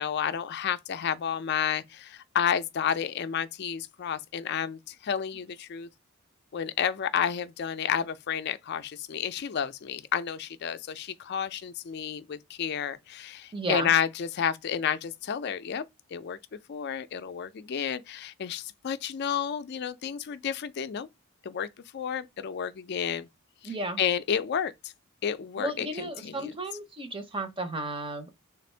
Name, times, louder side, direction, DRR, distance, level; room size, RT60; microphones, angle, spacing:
voice 1, 0.0-5.9 6.5-16.4 16.7-21.1 21.4-21.7 21.9-23.3 24.0-24.7 25.2-26.5, left 8 dB, 50° left, 0.4 m, -31 dB
voice 2, 13.5-13.9 23.6-24.0 25.6-28.3, right 2 dB, 25° right, 0.7 m, -34 dB
3.5 x 2.5 x 4.3 m
head